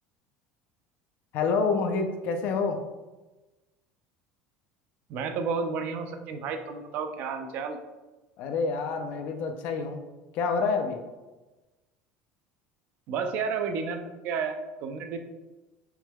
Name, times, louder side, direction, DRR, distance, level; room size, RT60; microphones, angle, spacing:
voice 1, 1.3-2.8 8.4-10.0 10.3-11.0, left 4 dB, 55° left, 6 dB, 0.5 m, -27 dB
voice 2, 5.1-7.8 13.1-15.2, right 5 dB, 55° right, 6 dB, 0.5 m, -31 dB
5.8 x 3.6 x 2.2 m, 1.1 s
cardioid pair, 150°, 3 cm